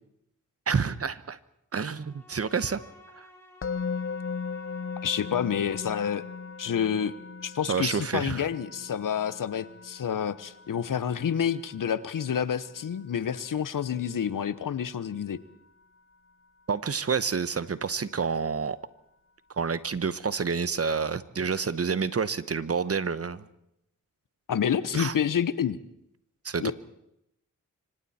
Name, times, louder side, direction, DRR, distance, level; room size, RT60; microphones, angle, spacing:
voice 1, 0.7-1.4 1.7-2.8 3.2-3.3 7.7-8.4 16.7-18.8 19.6-23.4 24.9-25.1 26.4-26.7, right 5 dB, 45° right, 15 dB, 1.1 m, -28 dB
Bowed string instrument, 1.9-6.7, left 1 dB, 10° left, 7.6 m, -54 dB
Musical instrument, 3.6-14.7, left 5 dB, 40° left, 0.8 m, -39 dB
voice 2, 5.0-6.2 6.6-7.1 7.4-15.4 24.5-25.8 26.6-26.7, left 8 dB, 75° left, 15 dB, 1.1 m, -28 dB
26.0 x 25.0 x 4.4 m, 0.79 s
cardioid pair, 65°, 33 cm